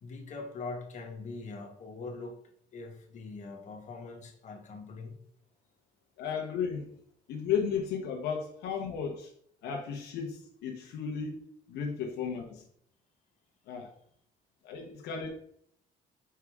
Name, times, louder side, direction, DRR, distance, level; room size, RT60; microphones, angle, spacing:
voice 1, 0.0-2.4 2.7-5.1, left 3 dB, 45° left, 1.4 m, -42 dB
voice 2, 6.2-6.9 7.3-9.3 9.6-12.6 13.7-13.9 14.6-15.3, left 6 dB, 80° left, 1.0 m, -34 dB
5.6 x 4.8 x 3.5 m
cardioid pair, 110°, 17 cm